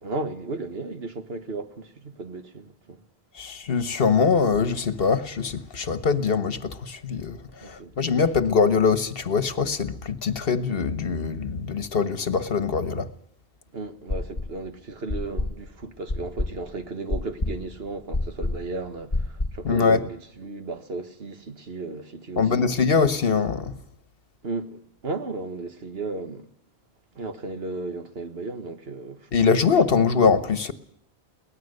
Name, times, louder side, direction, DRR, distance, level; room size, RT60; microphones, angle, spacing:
voice 1, 0.0-3.0 7.6-7.9 13.7-22.7 24.4-26.5 27.2-29.3 30.0-30.1, right 3 dB, 70° right, 1.8 m, -35 dB
voice 2, 3.3-13.1 19.6-20.0 22.4-23.7 29.3-30.7, left 5 dB, 65° left, 1.4 m, -23 dB
sound 1, 14.1-14.7 15.1-19.7, left 2 dB, 30° left, 1.8 m, -29 dB
23.0 x 18.5 x 6.7 m
omnidirectional pair, 1.1 m